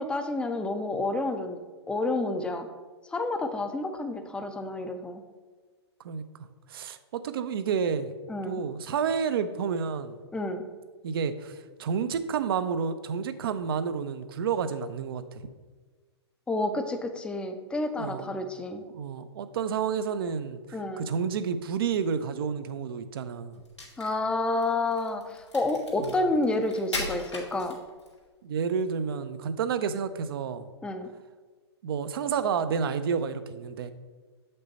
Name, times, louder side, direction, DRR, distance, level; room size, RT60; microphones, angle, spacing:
voice 1, 0.0-1.6 1.9-2.7 3.1-5.2 8.3-8.6 10.3-10.6 16.5-18.8 20.7-21.0 24.0-27.8 30.8-31.1, left 2 dB, 5° left, 7 dB, 0.5 m, -29 dB
voice 2, 6.7-8.1 8.4-10.2 11.0-15.5 17.9-18.3 18.8-23.6 26.0-26.2 28.4-30.7 31.8-33.9, right 6 dB, 55° right, 12 dB, 0.6 m, -30 dB
Crack, 23.6-28.2, left 2 dB, 90° left, 2.2 m, -38 dB
7.7 x 5.4 x 4.1 m, 1.4 s
figure-of-eight pair, 115°, 14 cm